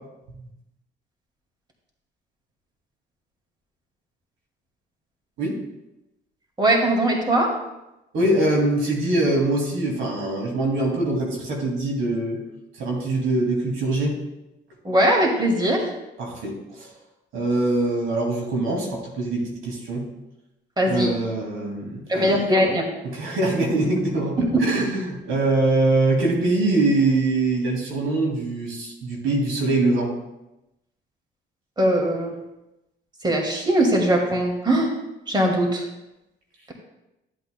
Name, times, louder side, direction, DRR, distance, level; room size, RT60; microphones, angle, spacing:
voice 1, 6.6-7.5 14.8-15.9 20.8-21.1 22.1-22.9 24.4-24.5 31.8-32.3 33.2-34.9 35.3-35.8, right 1 dB, 20° right, 0 dB, 2.1 m, -20 dB
voice 2, 8.1-12.4 12.8-14.1 16.2-16.9 17.3-20.1 20.9-22.4 23.0-30.1, right 2 dB, 85° right, -1 dB, 2.4 m, -23 dB
13.5 x 8.2 x 2.2 m, 0.94 s
cardioid pair, 90°, 20 cm